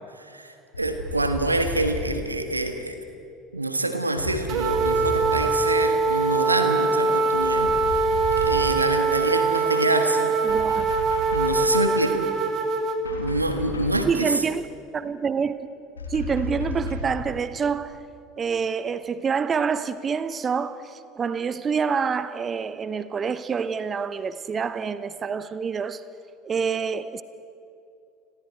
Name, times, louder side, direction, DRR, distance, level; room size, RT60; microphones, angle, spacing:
voice 1, 0.2-3.0 3.5-7.7 8.3-10.3 11.3-12.3 13.2-14.3, right 2 dB, 90° right, 1.5 m, -26 dB
sound 1, 0.7-2.2 4.2-5.6 7.3-8.8 10.5-11.7 13.0-14.1 16.0-17.3, left 3 dB, 80° left, 3.0 m, -33 dB
sound 2, 4.5-13.0, right 4 dB, 45° right, 2.3 m, -23 dB
voice 2, 10.4-10.9 14.1-14.7 14.9-15.6 16.1-18.0 18.4-26.0 26.4-27.2, right 6 dB, 30° right, 0.8 m, -27 dB
29.5 x 21.5 x 4.5 m
figure-of-eight pair, 70°, 0 cm